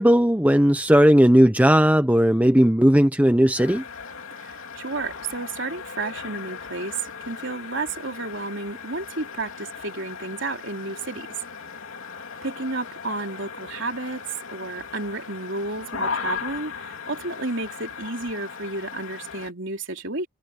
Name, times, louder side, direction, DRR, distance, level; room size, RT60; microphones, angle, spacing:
voice 1, 0.0-3.8, equal, 5° right, 1.0 m, -17 dB
sound 1, 3.6-19.5, left 5 dB, 70° left, 3.0 m, -37 dB
voice 2, 4.4-11.3 12.4-14.2 14.5-20.3, right 3 dB, 60° right, 3.9 m, -32 dB
head